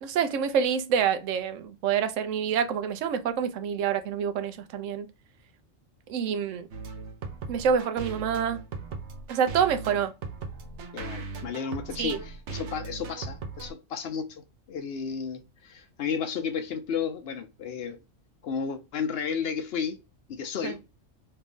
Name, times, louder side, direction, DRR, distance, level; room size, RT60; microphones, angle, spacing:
voice 1, 0.0-5.1 6.1-6.7 7.5-8.6 9.3-10.1 12.0-12.2 20.6-20.7, right 7 dB, 85° right, 1.0 m, -27 dB
sound 1, 6.7-13.7, right 4 dB, 70° right, 0.9 m, -38 dB
voice 2, 10.9-18.0 18.4-20.0 20.3-20.8, left 6 dB, 60° left, 0.8 m, -33 dB
3.2 x 2.5 x 3.5 m
omnidirectional pair, 1.3 m